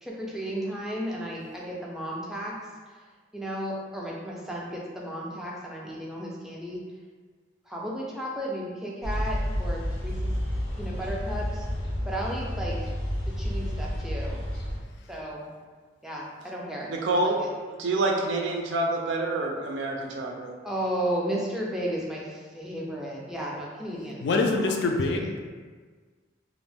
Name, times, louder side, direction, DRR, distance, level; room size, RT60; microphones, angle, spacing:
voice 1, 0.0-2.6 3.3-6.8 7.7-10.3 10.8-11.7 12.1-12.9 13.4-14.4 15.1-15.5 16.0-17.5 20.6-24.3, right 1 dB, 5° right, -4 dB, 0.3 m, -34 dB
sound 1, 9.0-14.8, equal, 90° left, 0.8 m, -30 dB
voice 2, 16.9-17.4 17.8-20.5, right 2 dB, 85° right, 1 dB, 0.4 m, -27 dB
voice 3, 24.2-25.5, left 3 dB, 70° left, 2 dB, 0.3 m, -25 dB
2.4 x 2.0 x 3.3 m, 1.5 s
head